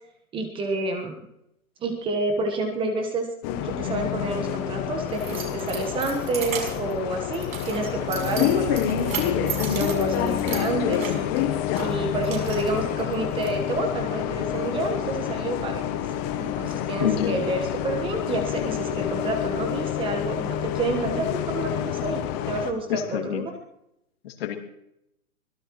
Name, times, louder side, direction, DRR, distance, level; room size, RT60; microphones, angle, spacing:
voice 1, 0.3-1.2 1.8-3.3 3.6-11.1 11.8-23.5, right 2 dB, 10° right, 5 dB, 1.3 m, -29 dB
Bus, 3.4-22.7, left 10 dB, 15° left, 0.8 m, -28 dB
Keys jangling, 4.4-13.5, right 7 dB, 65° right, 6.4 m, -37 dB
voice 2, 17.0-17.4 22.9-23.5 24.2-24.6, left 10 dB, 40° left, 5 dB, 2.5 m, -27 dB
24.5 x 17.5 x 3.1 m, 0.82 s
hypercardioid pair, 145°, 44 cm